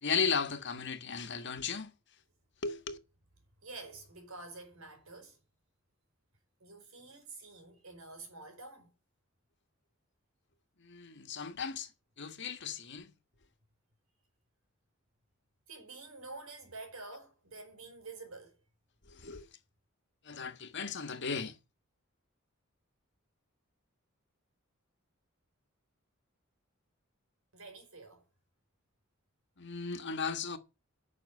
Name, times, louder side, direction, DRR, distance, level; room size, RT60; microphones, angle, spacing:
voice 1, 0.0-1.9 2.6-3.0 10.8-11.9 12.2-13.1 19.1-19.4 20.2-21.6 29.6-30.6, left 5 dB, 55° left, 1.6 m, -35 dB
voice 2, 3.6-5.4 6.6-8.9 15.7-18.6 27.5-28.2, right 3 dB, 90° right, 5.0 m, -48 dB
9.8 x 6.4 x 7.8 m
head